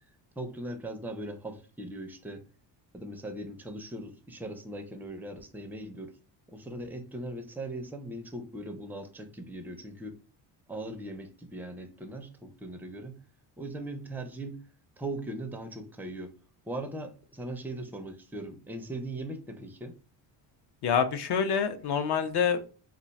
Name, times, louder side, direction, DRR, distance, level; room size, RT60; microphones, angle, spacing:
voice 1, 0.4-2.4 2.9-6.1 6.5-10.2 10.7-13.2 13.6-14.6 15.0-16.3 16.7-20.0, right 1 dB, 5° right, 0.4 m, -39 dB
voice 2, 20.8-22.7, left 7 dB, 60° left, 0.6 m, -27 dB
2.4 x 2.2 x 4.0 m
cardioid pair, 110°, 46 cm